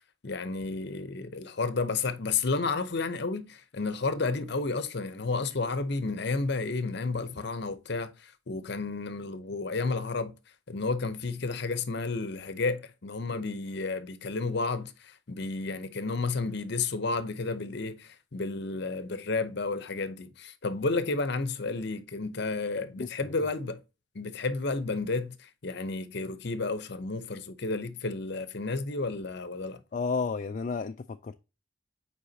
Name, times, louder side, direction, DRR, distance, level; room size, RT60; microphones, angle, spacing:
voice 1, 0.2-10.3 10.7-23.8 24.1-29.8, left 3 dB, 55° left, 0.8 m, -31 dB
voice 2, 23.0-23.3 29.9-31.3, left 4 dB, 40° left, 0.3 m, -32 dB
7.9 x 4.8 x 2.7 m
head